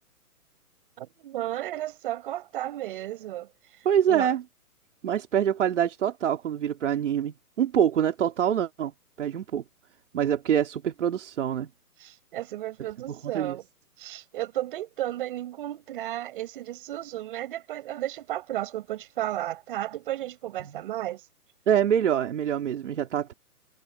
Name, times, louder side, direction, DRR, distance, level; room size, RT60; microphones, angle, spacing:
voice 1, 1.0-3.5 4.1-4.4 12.0-13.6 14.0-21.2, right 14 dB, 35° right, 5.2 m, -33 dB
voice 2, 3.8-4.4 5.0-8.9 9.2-9.6 10.1-11.7 13.2-13.6 20.6-20.8 21.7-23.3, right 9 dB, 50° right, 3.0 m, -25 dB
hypercardioid pair, 165°, 46 cm